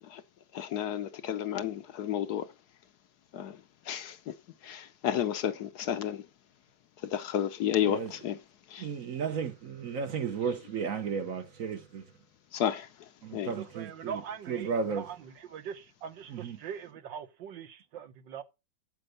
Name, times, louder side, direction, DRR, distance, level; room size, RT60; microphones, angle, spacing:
voice 1, 0.5-2.5 3.3-3.6 3.9-4.2 4.6-6.2 7.1-8.3 8.7-8.9 12.5-12.9 13.3-13.5, left 10 dB, 65° left, 1.1 m, -31 dB
voice 2, 7.8-8.1 8.8-12.1 13.2-14.2 14.5-15.1 16.3-16.6, right 6 dB, 55° right, 1.1 m, -34 dB
voice 3, 13.6-15.2 15.5-18.4, right 7 dB, 75° right, 1.7 m, -42 dB
7.9 x 7.7 x 6.8 m
omnidirectional pair, 2.0 m